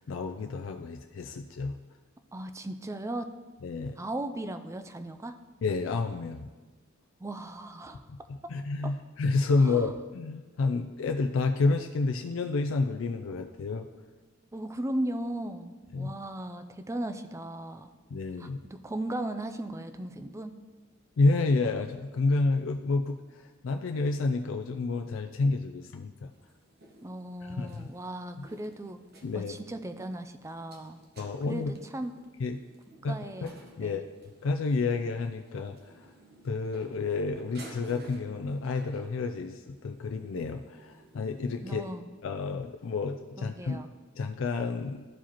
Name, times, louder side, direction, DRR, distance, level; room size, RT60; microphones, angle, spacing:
voice 1, 0.0-1.8 3.6-4.0 5.6-6.5 8.1-8.2 8.5-13.9 15.9-16.1 18.1-18.6 21.2-26.3 27.4-27.9 29.2-29.5 31.2-31.7 32.4-32.6 33.0-33.2 33.4-33.5 33.8-34.0 34.4-35.8 36.4-41.8 42.2-43.8 44.2-45.1, left 3 dB, 70° left, 4 dB, 0.4 m, -29 dB
voice 2, 2.3-3.3 4.0-5.3 7.2-8.1 8.8-8.9 9.6-9.9 14.5-17.9 18.4-20.5 27.0-29.0 29.3-31.0 31.5-32.1 33.0-33.5 33.8-34.0 41.6-42.1 43.4-43.9, right 1 dB, 15° right, 9 dB, 0.4 m, -37 dB
sound 1, 26.3-41.9, right 1 dB, 50° right, 1.1 m, -55 dB
13.0 x 4.8 x 2.9 m, 1.3 s
head